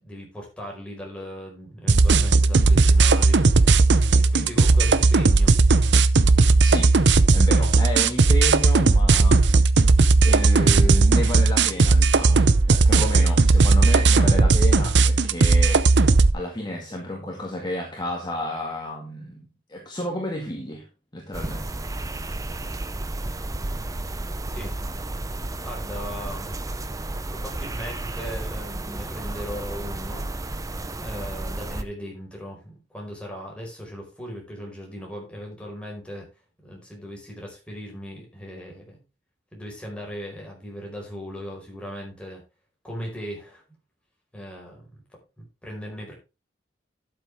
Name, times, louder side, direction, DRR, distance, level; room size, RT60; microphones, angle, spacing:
voice 1, 0.0-3.8 4.2-5.6 24.5-24.7 25.6-26.6 27.3-30.7 31.0-36.3 36.6-39.0 39.5-42.4 42.8-43.6 44.3-45.0 45.4-46.1, equal, 5° left, 4.9 m, -38 dB
sound 1, 1.9-16.3, right 3 dB, 70° right, 0.7 m, -17 dB
voice 2, 7.3-9.6 10.2-15.9 16.3-20.9 21.1-21.8, left 1 dB, 25° left, 2.0 m, -31 dB
sound 2, 21.3-31.8, right 2 dB, 20° right, 0.7 m, -32 dB
12.0 x 7.6 x 3.6 m
head